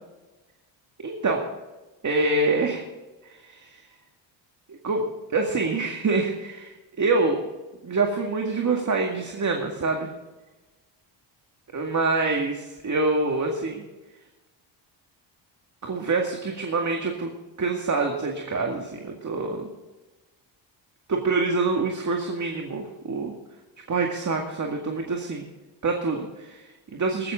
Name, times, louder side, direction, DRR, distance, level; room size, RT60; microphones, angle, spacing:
voice 1, 1.0-1.5 2.0-2.9 3.2-3.8 4.7-7.4 7.8-10.1 11.7-13.9 15.8-17.3 17.6-19.7 21.1-23.3 23.9-25.4 25.8-27.3, right 3 dB, 40° right, 2 dB, 2.0 m, -26 dB
15.5 x 13.5 x 3.7 m, 1.1 s
cardioid pair, 80°, 46 cm